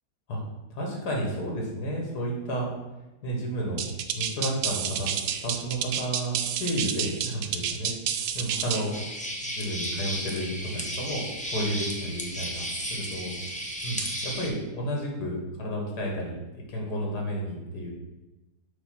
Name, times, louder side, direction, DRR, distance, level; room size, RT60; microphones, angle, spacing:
voice 1, 0.7-2.7 3.2-3.8 4.1-8.0 8.3-8.9 9.5-13.3 13.8-16.4 16.7-17.9, equal, 85° left, -1 dB, 2.1 m, -31 dB
sound 1, 3.8-8.9, right 8 dB, 75° right, 1.1 m, -30 dB
sound 2, 8.9-14.5, equal, 5° left, 0.6 m, -34 dB
7.3 x 3.0 x 5.8 m, 1.0 s
omnidirectional pair, 1.7 m